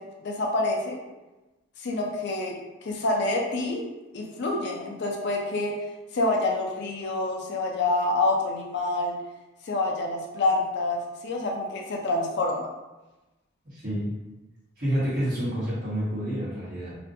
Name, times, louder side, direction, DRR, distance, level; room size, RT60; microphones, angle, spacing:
voice 1, 0.2-1.0 1.8-2.5 2.8-3.8 4.1-5.7 6.1-9.2 9.7-12.7, left 2 dB, 60° left, -1 dB, 0.4 m, -27 dB
voice 2, 13.7-14.1 14.8-16.9, equal, 50° right, -9 dB, 1.1 m, -28 dB
2.5 x 2.1 x 2.6 m, 1.1 s
head